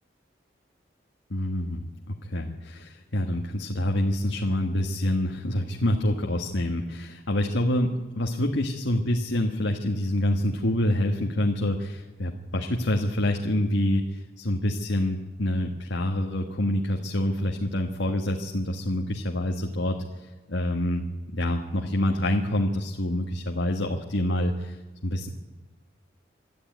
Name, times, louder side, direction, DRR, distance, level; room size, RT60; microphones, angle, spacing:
voice 1, 1.3-25.3, left 1 dB, 90° left, 2 dB, 1.7 m, -27 dB
24.0 x 13.0 x 9.6 m, 1.3 s
head